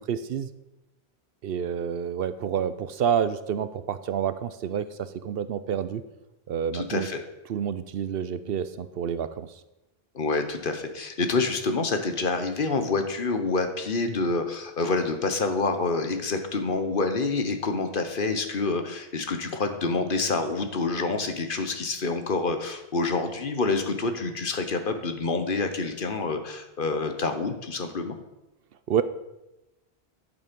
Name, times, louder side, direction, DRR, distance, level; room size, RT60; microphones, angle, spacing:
voice 1, 0.1-0.5 1.4-6.0 6.5-7.1 7.5-9.5 28.9-29.0, right 8 dB, 70° right, 13 dB, 0.8 m, -28 dB
voice 2, 6.7-7.2 10.1-28.2, left 3 dB, 55° left, 7 dB, 1.2 m, -27 dB
11.0 x 7.1 x 5.2 m, 0.96 s
omnidirectional pair, 1.1 m